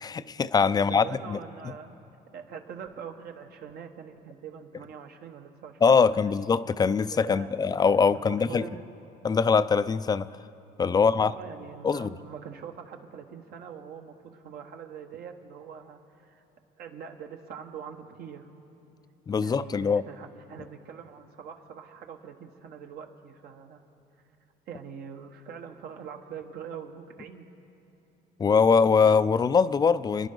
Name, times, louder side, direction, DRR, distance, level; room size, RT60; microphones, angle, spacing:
voice 1, 0.0-1.4 5.8-8.6 9.2-10.3 10.8-11.3 11.8-12.1 19.3-20.0 28.4-30.3, left 5 dB, 25° left, 15 dB, 0.4 m, -22 dB
voice 2, 0.8-2.0 2.3-6.5 7.1-7.6 8.1-8.9 11.0-16.4 16.8-18.5 19.4-23.8 24.7-27.5, right 7 dB, 70° right, 5 dB, 1.3 m, -43 dB
29.0 x 10.5 x 3.9 m, 2.9 s
cardioid pair, 110°, 17 cm